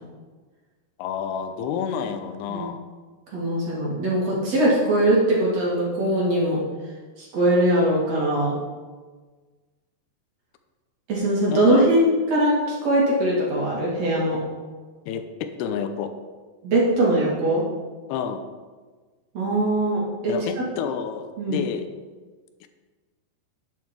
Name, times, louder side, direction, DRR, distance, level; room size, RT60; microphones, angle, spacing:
voice 1, 1.0-2.8 11.5-11.9 15.1-16.1 18.1-18.5 20.3-21.9 22.6-22.7, left 7 dB, 80° left, 8 dB, 2.6 m, -29 dB
voice 2, 3.3-6.6 7.2-8.5 11.1-14.4 16.6-17.6 19.3-20.3 21.4-21.6, right 1 dB, 45° right, -5 dB, 3.2 m, -21 dB
10.5 x 8.3 x 4.6 m, 1.4 s
omnidirectional pair, 4.9 m